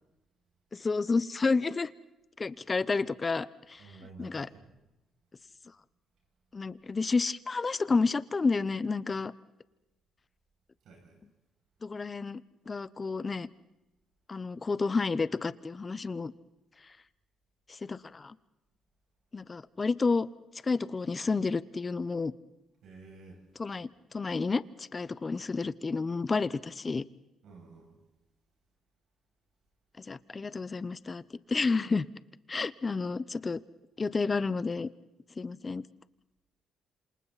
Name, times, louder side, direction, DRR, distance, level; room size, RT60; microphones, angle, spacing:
voice 1, 0.7-1.9 2.4-3.8 4.2-4.5 6.5-9.3 11.8-12.4 12.7-13.5 14.3-16.3 17.7-18.3 19.3-20.3 20.6-22.3 23.6-27.0 30.0-31.2 31.5-32.1 32.5-33.6 34.0-34.9 35.4-35.8, left 4 dB, 30° left, 16 dB, 0.9 m, -30 dB
voice 2, 3.8-4.7 10.8-11.2 14.3-14.4 22.8-23.5 27.4-28.0, right 4 dB, 75° right, 2 dB, 7.1 m, -51 dB
27.5 x 27.0 x 4.2 m, 0.95 s
cardioid pair, 90°, 0 cm